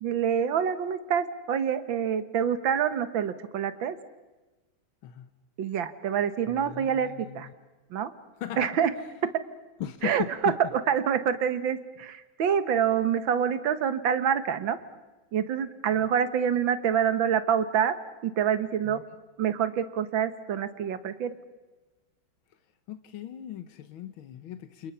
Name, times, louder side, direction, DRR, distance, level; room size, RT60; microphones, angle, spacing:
voice 1, 0.0-4.0 5.6-7.5 7.9-8.1 8.6-8.9 9.2-9.3 10.0-10.5 10.9-14.8 15.3-18.0 18.2-19.0 19.4-21.4, right 8 dB, 75° right, 12 dB, 1.9 m, -26 dB
voice 2, 6.5-7.5 8.4-8.8 9.8-10.6 15.9-16.1 18.8-19.0 22.9-24.9, left 11 dB, 85° left, 10 dB, 1.9 m, -38 dB
29.0 x 28.5 x 5.6 m, 1.2 s
omnidirectional pair, 2.2 m